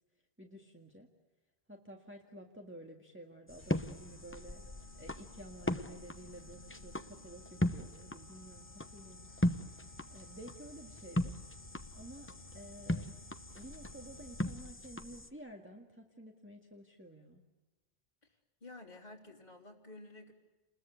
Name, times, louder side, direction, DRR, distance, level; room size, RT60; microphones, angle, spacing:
voice 1, 0.4-1.1 1.7-4.6 4.9-11.4 11.9-13.2 13.6-17.4, right 1 dB, 10° right, 0 dB, 1.9 m, -52 dB
sound 1, 3.5-15.3, left 1 dB, 15° left, 0.8 m, -39 dB
sound 2, 3.6-15.0, left 1 dB, 90° left, 1.8 m, -58 dB
voice 2, 18.2-20.3, left 2 dB, 40° left, -2 dB, 3.3 m, -52 dB
29.5 x 21.0 x 8.2 m, 1.2 s
omnidirectional pair, 1.1 m